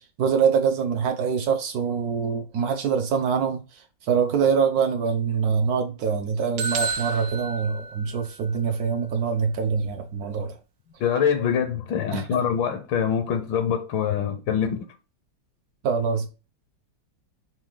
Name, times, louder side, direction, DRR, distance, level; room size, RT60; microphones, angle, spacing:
voice 1, 0.2-3.6 4.0-10.5 12.1-12.4 15.8-16.3, right 6 dB, 65° right, 0.9 m, -24 dB
sound 1, 6.6-8.5, right 4 dB, 90° right, 1.6 m, -30 dB
voice 2, 11.0-14.9, left 8 dB, 80° left, 1.4 m, -24 dB
5.9 x 2.3 x 3.7 m
omnidirectional pair, 2.2 m